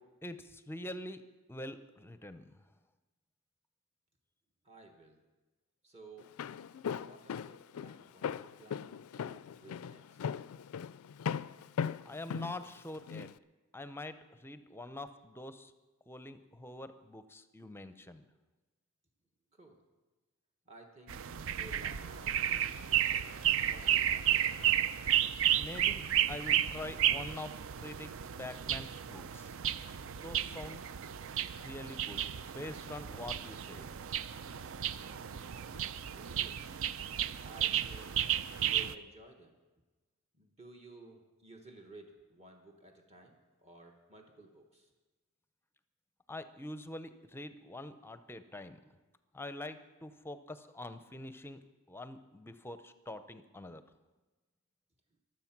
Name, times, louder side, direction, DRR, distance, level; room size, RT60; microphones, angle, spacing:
voice 1, 0.2-1.2 1.5-2.5 12.0-13.3 13.7-15.7 16.1-18.2 25.6-28.1 28.4-29.5 30.2-30.8 31.6-32.2 32.5-33.9 46.3-48.9 49.3-51.6 51.9-53.8, left 1 dB, 10° left, 11 dB, 0.6 m, -45 dB
voice 2, 4.6-5.2 5.8-6.3 7.0-10.2 19.5-19.8 20.7-21.2 21.5-22.6 23.6-24.6 35.7-36.7 37.4-38.3 38.7-39.6 40.3-44.9, right 2 dB, 30° right, 2 dB, 1.3 m, -55 dB
Walk footsteps, 6.2-13.3, left 7 dB, 75° left, 0.3 m, -38 dB
sound 1, 21.1-38.9, right 10 dB, 65° right, 0.5 m, -33 dB
23.0 x 7.8 x 5.9 m, 1.2 s
head